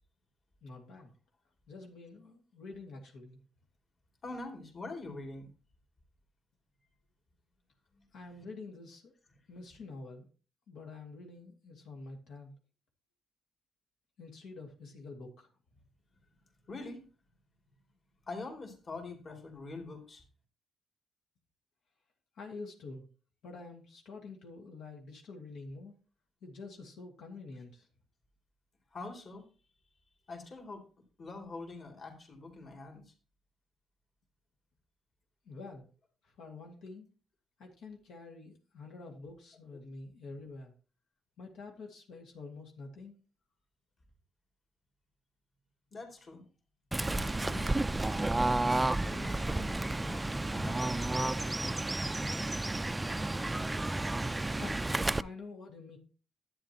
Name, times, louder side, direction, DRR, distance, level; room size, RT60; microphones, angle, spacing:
voice 1, 0.6-1.1 1.7-3.4 8.1-9.1 9.5-10.3 10.7-12.5 14.2-15.5 22.4-23.0 23.4-25.9 26.4-27.9 35.5-35.9 36.4-37.1 37.6-40.7 41.4-43.1 54.5-54.9 55.1-56.0, left 3 dB, 80° left, 1 dB, 2.2 m, -47 dB
voice 2, 4.2-5.5 7.9-8.1 8.3-8.4 16.7-17.0 18.2-20.2 28.9-29.5 30.3-30.9 31.2-33.1 39.7-39.8 45.9-46.4 47.3-47.8 49.0-51.4, left 3 dB, 40° left, 3 dB, 2.9 m, -45 dB
Fowl / Bird, 46.9-55.2, right 2 dB, 15° right, 0.4 m, -31 dB
11.5 x 9.1 x 3.0 m, 0.36 s
cardioid pair, 90°, 0 cm